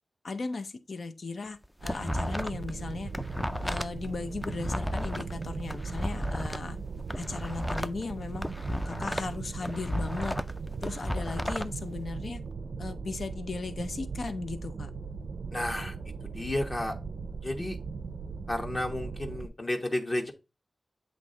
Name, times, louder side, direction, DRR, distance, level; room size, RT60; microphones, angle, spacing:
voice 1, 0.2-3.1 3.6-6.8 7.1-8.5 8.8-10.4 10.8-12.4 12.8-14.9, left 3 dB, 70° left, 0.7 m, -37 dB
sound 1, 1.5-2.7 3.0-6.6 7.0-9.3 9.6-11.7, equal, 5° left, 0.4 m, -33 dB
sound 2, 1.8-19.5, right 4 dB, 85° right, 0.5 m, -39 dB
voice 2, 15.5-15.9 16.3-16.9 17.4-17.8 18.5-20.3, left 1 dB, 35° left, 1.2 m, -31 dB
8.2 x 3.3 x 3.8 m
wide cardioid pair, 100°, 0 cm